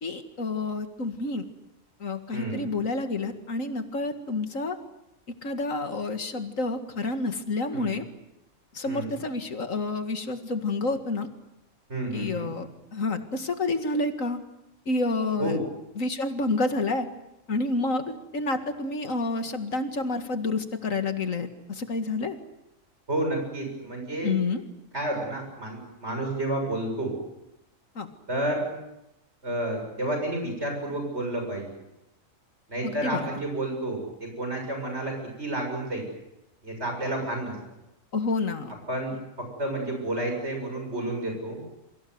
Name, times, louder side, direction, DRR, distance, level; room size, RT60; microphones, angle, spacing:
voice 1, 0.0-1.4 2.0-4.8 5.4-8.1 8.7-11.3 12.1-14.4 14.9-15.6 16.0-17.1 17.5-22.4 24.2-24.6 28.0-28.1 32.8-33.3 38.1-38.7, left 3 dB, 80° left, 7 dB, 2.4 m, -29 dB
voice 2, 2.3-2.6 7.7-7.9 8.9-9.1 11.9-12.5 15.4-15.7 23.1-24.3 24.9-27.1 28.3-28.6 29.4-31.7 32.7-36.1 36.6-37.5 38.9-39.1 39.6-41.6, right 1 dB, 55° right, 3 dB, 7.3 m, -30 dB
28.0 x 24.0 x 8.0 m, 0.90 s
omnidirectional pair, 1.4 m